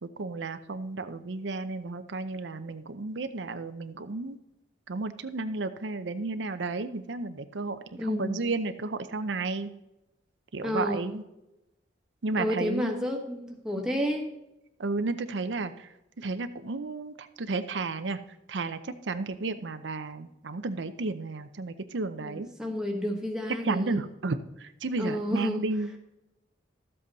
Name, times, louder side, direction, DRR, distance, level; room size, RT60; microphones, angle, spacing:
voice 1, 0.0-4.4 4.9-9.7 10.5-11.2 12.2-13.2 13.8-14.0 14.8-18.2 18.5-22.5 23.6-26.0, right 3 dB, 90° right, 10 dB, 0.7 m, -33 dB
voice 2, 8.0-8.4 10.6-11.0 12.4-14.3 22.2-24.0 25.0-25.6, equal, 5° right, 0 dB, 1.4 m, -30 dB
13.0 x 7.8 x 4.1 m, 0.92 s
head